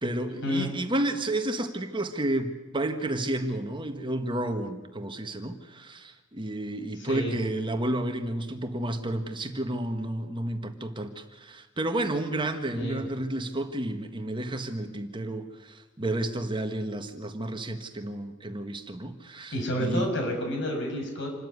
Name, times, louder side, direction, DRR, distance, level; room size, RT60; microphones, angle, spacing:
voice 1, 0.0-20.1, right 1 dB, 25° right, 7 dB, 1.6 m, -31 dB
voice 2, 7.0-7.3 12.7-13.0 19.5-21.3, equal, 60° left, 3 dB, 6.3 m, -29 dB
27.0 x 13.5 x 9.6 m, 1.2 s
head